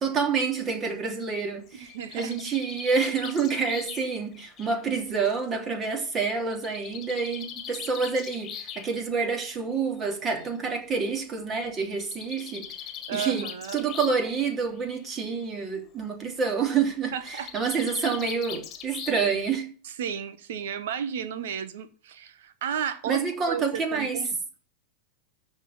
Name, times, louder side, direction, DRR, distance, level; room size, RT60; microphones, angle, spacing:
voice 1, 0.0-12.6 13.1-13.5 13.7-19.7 23.1-24.2, right 5 dB, 25° right, 3.1 m, -28 dB
Bird, 1.7-5.4 6.5-8.9 10.0-10.1 10.4-10.5 10.7-10.8 11.9-14.3 14.6-15.1 17.1-19.6, left 9 dB, 30° left, 2.0 m, -41 dB
voice 2, 1.7-2.3 13.1-13.8 17.1-17.5 20.0-23.2 23.5-24.3, right 8 dB, 55° right, 1.2 m, -33 dB
13.5 x 4.5 x 8.7 m
figure-of-eight pair, 90°, 0 cm